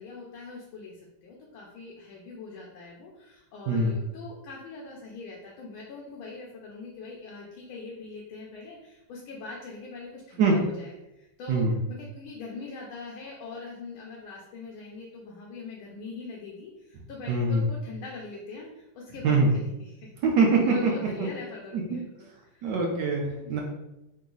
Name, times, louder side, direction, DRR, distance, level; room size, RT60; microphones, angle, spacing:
voice 1, 0.0-20.1 20.5-22.6 23.4-23.6, left 3 dB, 75° left, -2 dB, 1.5 m, -42 dB
voice 2, 17.3-17.6 19.2-19.5 20.2-20.9 21.2-21.3 21.7-22.0 22.6-23.2 23.5-23.6, right 3 dB, 70° right, 0 dB, 1.0 m, -23 dB
4.0 x 2.7 x 3.7 m, 0.91 s
omnidirectional pair, 2.4 m